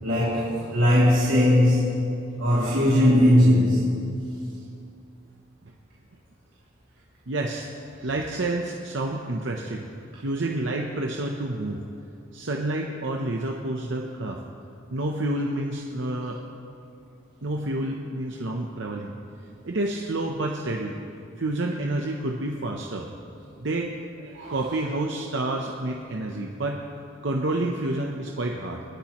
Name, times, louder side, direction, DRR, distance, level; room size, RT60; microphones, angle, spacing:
voice 1, 0.0-1.9 2.4-3.9 24.3-24.6, left 1 dB, 90° right, -8 dB, 2.9 m, -19 dB
voice 2, 7.3-7.7 8.0-9.9 10.2-11.8 12.3-14.4 14.9-16.4 17.4-19.1 19.6-21.0 21.4-23.1 23.6-23.9 24.5-26.8 27.2-28.8, right 2 dB, 65° right, 1 dB, 0.8 m, -29 dB
28.0 x 10.0 x 3.1 m, 2.6 s
head